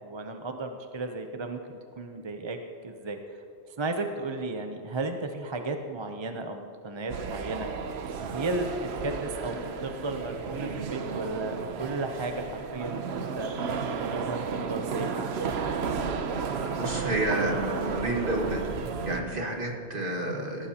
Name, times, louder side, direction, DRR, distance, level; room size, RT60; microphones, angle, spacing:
voice 1, 0.0-2.6 2.8-3.2 3.8-7.7 8.3-8.7 9.0-15.5 19.1-19.5, right 2 dB, 30° right, 5 dB, 0.6 m, -34 dB
sound 1, 7.1-19.2, right 5 dB, 75° right, 1.0 m, -33 dB
voice 2, 16.7-18.6 19.0-20.7, right 1 dB, 55° right, -1 dB, 2.1 m, -30 dB
18.5 x 14.0 x 2.9 m, 2.6 s
omnidirectional pair, 1.1 m